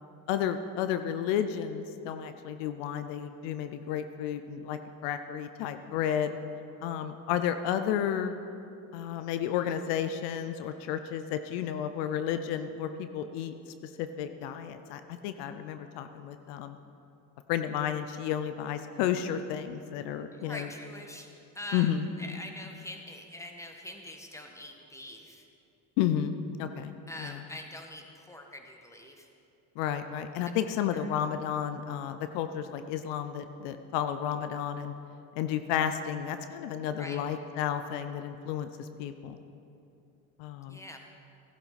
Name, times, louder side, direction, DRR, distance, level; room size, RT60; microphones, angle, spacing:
voice 1, 0.3-6.4 6.8-8.3 8.9-13.5 13.8-16.8 17.5-20.7 21.7-22.1 26.0-26.9 27.2-27.4 29.8-34.9 35.4-39.4 40.4-40.8, left 9 dB, 80° left, 9 dB, 0.7 m, -32 dB
voice 2, 20.3-21.3 21.5-25.5 27.1-29.3 30.9-31.1 37.0-37.2 40.7-41.0, left 1 dB, 5° left, 3 dB, 1.6 m, -44 dB
15.0 x 11.0 x 4.2 m, 2.7 s
supercardioid pair, 70°, 42 cm